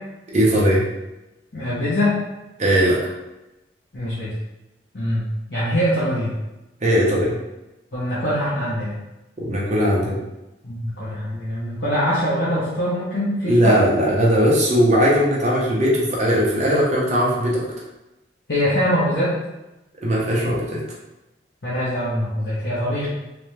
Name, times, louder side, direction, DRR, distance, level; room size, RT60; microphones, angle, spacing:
voice 1, 0.3-0.8 2.6-3.0 6.8-7.3 9.4-10.1 13.5-17.6 20.0-20.8, equal, 40° right, -5 dB, 0.9 m, -18 dB
voice 2, 1.5-2.1 3.9-4.3 4.9-5.2 5.5-6.3 7.9-8.9 10.6-13.8 18.5-19.3 21.6-23.1, equal, 70° left, -11 dB, 1.0 m, -23 dB
3.3 x 3.0 x 3.3 m, 0.99 s
head